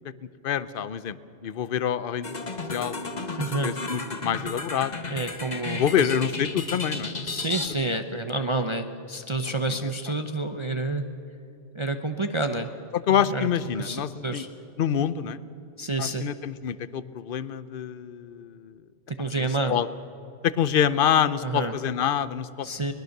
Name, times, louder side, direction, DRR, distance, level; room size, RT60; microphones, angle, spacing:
voice 1, 0.4-2.4 2.7-2.9 3.6-4.9 5.8-7.4 9.7-9.8 12.9-14.4 14.8-15.4 16.0-18.8 19.3-19.9 20.4-22.7, left 9 dB, 50° left, 15 dB, 0.8 m, -26 dB
sound 1, 2.2-7.7, left 3 dB, 35° left, 1.4 m, -33 dB
voice 2, 3.4-3.8 5.1-6.1 7.2-11.1 11.7-12.7 13.3-13.5 13.7-14.5 15.8-16.3 19.1-19.8 21.4-21.7 22.6-22.9, right 2 dB, 30° right, 6 dB, 0.7 m, -29 dB
22.5 x 20.5 x 6.6 m, 2.9 s
omnidirectional pair, 1.3 m